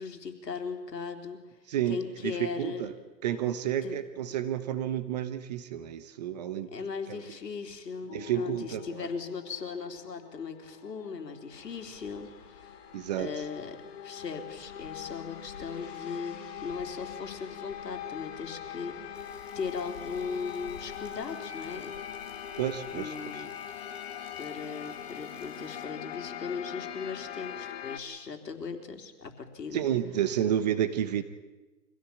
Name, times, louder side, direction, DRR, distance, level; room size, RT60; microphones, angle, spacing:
voice 1, 0.0-1.4 1.9-2.9 3.7-4.0 6.7-12.8 13.2-13.8 14.0-19.2 19.5-21.9 22.9-23.5 24.4-29.8, left 5 dB, 80° left, 6 dB, 3.8 m, -38 dB
voice 2, 1.7-2.9 3.2-7.2 8.1-9.1 12.9-13.3 22.6-23.3 29.7-31.2, right 10 dB, 25° right, 11 dB, 1.0 m, -31 dB
sound 1, 8.1-28.0, left 9 dB, 40° left, 1.9 m, -42 dB
sound 2, 11.5-23.1, left 5 dB, 60° left, 4.5 m, -54 dB
Rain, 19.1-25.8, equal, ahead, 2.7 m, -59 dB
25.0 x 16.5 x 8.6 m, 1.1 s
hypercardioid pair, 155°, 49 cm